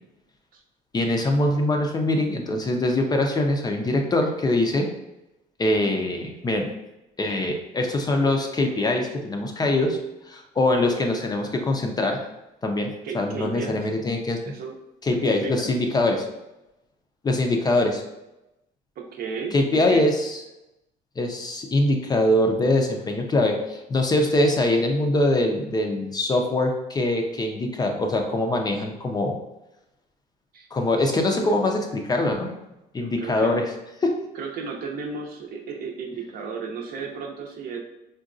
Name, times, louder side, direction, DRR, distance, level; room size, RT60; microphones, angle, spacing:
voice 1, 0.9-4.9 5.6-6.7 7.2-10.0 10.3-12.2 12.6-14.4 15.0-16.3 17.2-18.0 19.5-20.4 21.2-29.4 30.7-32.5 32.9-33.6 34.0-34.2, left 1 dB, 25° left, 3 dB, 0.4 m, -23 dB
voice 2, 13.0-13.9 14.4-14.8 15.1-15.7 19.0-20.1 30.5-30.7 31.0-31.8 33.0-33.5 34.3-37.8, right 5 dB, 60° right, 2 dB, 0.6 m, -34 dB
3.7 x 2.2 x 2.5 m, 0.93 s
cardioid pair, 110°, 17 cm